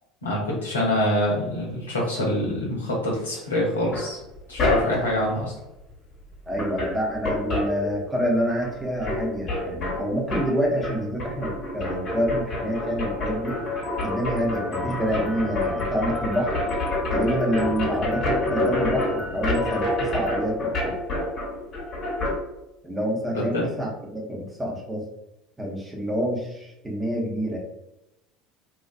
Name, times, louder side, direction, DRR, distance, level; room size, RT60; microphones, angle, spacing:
voice 1, 0.2-4.2 4.5-5.5 23.3-23.7, left 1 dB, 80° left, -3 dB, 0.8 m, -25 dB
sound 1, 3.9-5.2 6.2-6.3 6.5-8.4 8.6-22.4, left 2 dB, 45° left, 1.0 m, -28 dB
voice 2, 6.5-13.6 14.0-16.5 17.1-21.0 22.8-25.0 25.6-27.6, equal, 10° right, -2 dB, 0.8 m, -27 dB
sound 2, 13.5-20.4, left 2 dB, 20° left, 0.6 m, -37 dB
2.6 x 2.3 x 2.5 m, 0.91 s
figure-of-eight pair, 70°, 0 cm